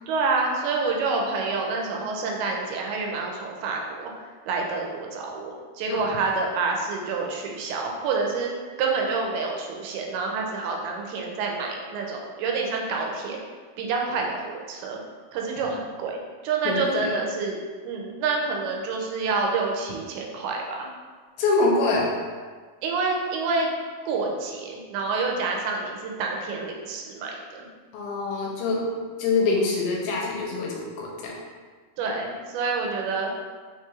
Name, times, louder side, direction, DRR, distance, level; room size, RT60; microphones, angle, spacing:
voice 1, 0.1-4.1 4.5-8.5 8.8-13.4 13.8-15.0 15.3-17.6 17.8-20.9 22.8-23.7 24.1-27.7 32.0-33.3, right 4 dB, 85° right, 0 dB, 2.5 m, -28 dB
voice 2, 16.7-17.0 21.4-22.2 27.9-28.9 29.2-31.3, left 3 dB, 85° left, -3 dB, 2.4 m, -25 dB
5.6 x 2.9 x 2.3 m, 1.5 s
omnidirectional pair, 4.5 m